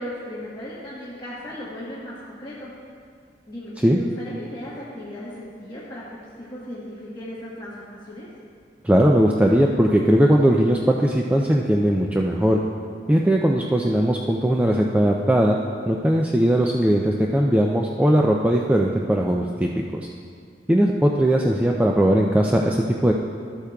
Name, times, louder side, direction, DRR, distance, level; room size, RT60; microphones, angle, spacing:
voice 1, 0.0-2.7 3.5-8.3, left 1 dB, 25° left, -8 dB, 1.2 m, -36 dB
voice 2, 8.8-12.6 13.1-15.6 15.9-20.1 20.7-23.1, equal, 10° right, -1 dB, 0.3 m, -19 dB
13.5 x 8.3 x 2.3 m, 2.2 s
head